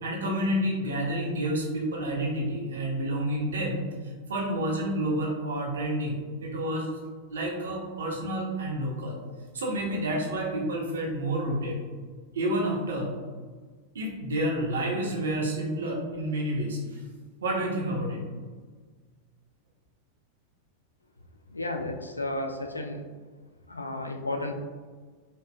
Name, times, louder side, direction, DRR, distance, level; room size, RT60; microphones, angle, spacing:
voice 1, 0.0-3.8 4.3-6.9 7.3-9.2 9.5-11.8 12.3-13.1 13.9-17.0 17.4-18.2, right 1 dB, 65° right, -1 dB, 0.7 m, -29 dB
voice 2, 21.5-23.0 23.7-24.5, left 2 dB, 80° left, 4 dB, 0.3 m, -32 dB
4.2 x 2.3 x 2.3 m, 1.5 s
figure-of-eight pair, 90°, 0 cm